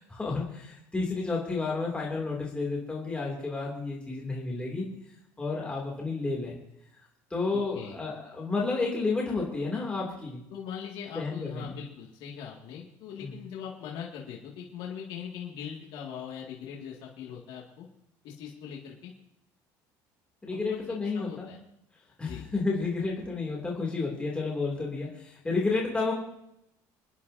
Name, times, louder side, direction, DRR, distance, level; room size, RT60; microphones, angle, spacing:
voice 1, 0.0-4.9 5.4-6.5 7.3-10.4 11.1-11.8 13.2-13.4 20.4-21.5 22.2-26.1, left 3 dB, 15° left, -3 dB, 2.7 m, -31 dB
voice 2, 7.5-8.0 10.5-17.9 18.2-19.1 20.5-20.8 21.1-21.6 22.2-22.5, left 8 dB, 70° left, -3 dB, 2.1 m, -41 dB
29.0 x 10.0 x 2.8 m, 0.82 s
cardioid pair, 125°, 8 cm